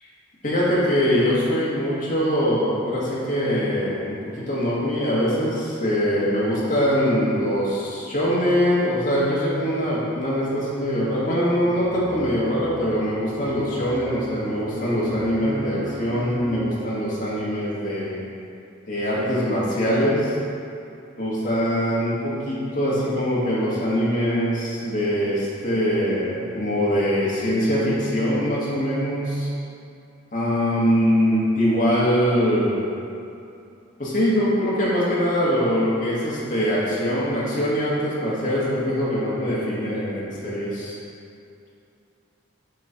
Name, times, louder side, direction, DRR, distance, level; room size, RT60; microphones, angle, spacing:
voice 1, 0.4-18.2 18.9-20.4 21.2-29.5 30.3-32.8 34.0-40.9, equal, 40° left, -8 dB, 1.5 m, -23 dB
sound 1, 11.6-16.6, equal, 20° right, 0.9 m, -38 dB
6.3 x 3.2 x 5.5 m, 2.6 s
head